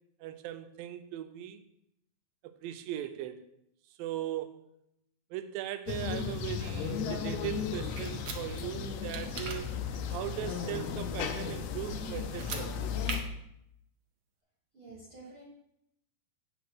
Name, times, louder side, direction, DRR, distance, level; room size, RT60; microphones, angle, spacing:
voice 1, 0.2-1.6 2.4-3.4 4.0-4.6 5.3-9.8 10.1-12.7, right 12 dB, 85° right, 2.4 m, -39 dB
sound 1, 5.9-13.2, left 6 dB, 80° left, 1.6 m, -35 dB
sound 2, 8.0-8.4 9.1-9.6 12.3-12.6 13.0-13.2, right 5 dB, 65° right, 1.9 m, -38 dB
voice 2, 14.7-15.4, right 3 dB, 45° right, 2.0 m, -49 dB
8.3 x 5.0 x 6.1 m
omnidirectional pair, 4.0 m